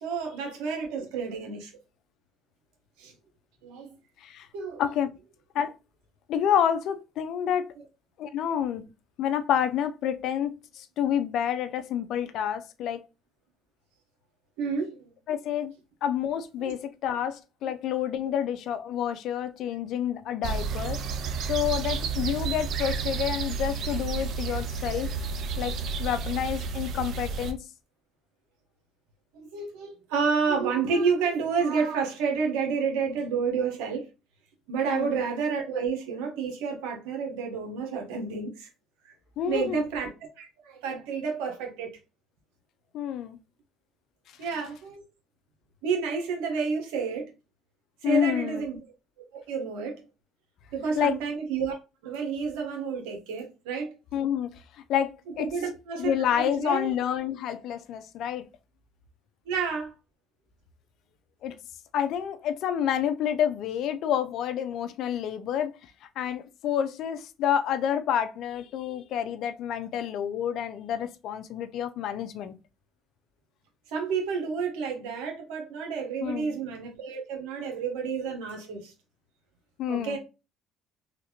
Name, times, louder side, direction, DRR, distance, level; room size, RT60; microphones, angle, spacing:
voice 1, 0.0-1.7 3.0-3.1 3.6-3.9 4.5-4.8 14.6-15.1 16.6-16.7 21.9-22.0 29.3-34.1 34.7-38.7 39.5-41.9 44.4-45.0 45.8-47.3 48.0-48.8 49.3-50.0 50.7-51.8 52.0-53.9 55.4-56.9 59.4-59.9 73.9-78.9 79.9-80.2, right 5 dB, 80° right, 1.0 m, -30 dB
voice 2, 4.8-5.1 5.5-5.7 6.3-7.7 8.2-8.8 9.2-13.0 15.3-15.7 16.0-21.0 21.5-25.1 25.6-27.7 34.9-35.1 39.4-39.8 42.9-43.4 48.0-48.7 51.0-51.1 54.1-54.5 54.9-55.5 56.0-58.5 61.4-61.5 61.9-65.7 66.2-72.5 76.2-76.6 79.8-80.2, left 9 dB, 65° left, 0.4 m, -28 dB
sound 1, 20.4-27.5, right 5 dB, 60° right, 0.5 m, -31 dB
3.2 x 2.5 x 2.8 m
supercardioid pair, 70°, 0 cm